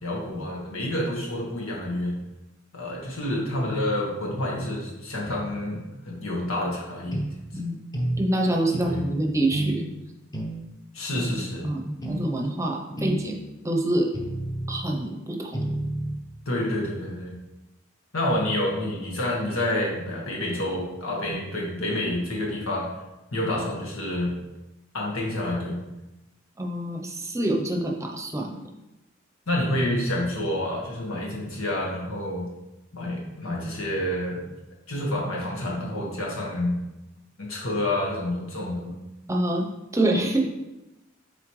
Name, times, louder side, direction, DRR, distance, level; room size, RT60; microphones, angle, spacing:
voice 1, 0.0-2.2 2.7-7.3 8.8-9.0 10.9-11.7 16.5-17.3 18.1-22.9 23.3-24.3 24.9-25.8 29.5-32.4 32.9-34.5 34.9-36.8 37.4-39.0, left 1 dB, 90° left, -3 dB, 1.7 m, -28 dB
sound 1, 7.1-7.3 7.9-8.2 8.7-9.0 9.5-9.8 10.3-10.6 11.2-11.4 12.0-12.3 13.0-13.3 14.1-14.8 15.5-16.2, right 1 dB, 20° left, 0.8 m, -29 dB
voice 2, 7.5-7.8 8.2-9.9 11.6-13.4 13.6-14.1 14.7-15.7 26.6-28.5 39.3-39.6 39.9-40.4, right 1 dB, 15° right, 2 dB, 0.7 m, -26 dB
7.5 x 4.1 x 3.2 m, 0.98 s
head